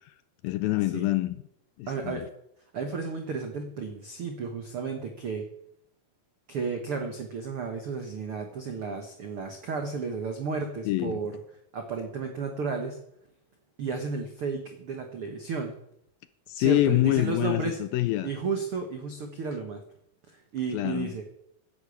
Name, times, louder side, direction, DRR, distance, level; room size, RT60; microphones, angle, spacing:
voice 1, 0.4-1.4 1.8-2.2 10.9-11.2 16.5-18.3 20.7-21.1, left 16 dB, 80° left, 2.2 m, -26 dB
voice 2, 1.9-2.2 2.7-5.4 6.5-11.3 11.7-13.0 13.8-15.7 16.5-17.8 18.2-19.8 20.5-21.2, right 4 dB, 75° right, 1.3 m, -33 dB
10.5 x 10.0 x 8.4 m
omnidirectional pair, 4.6 m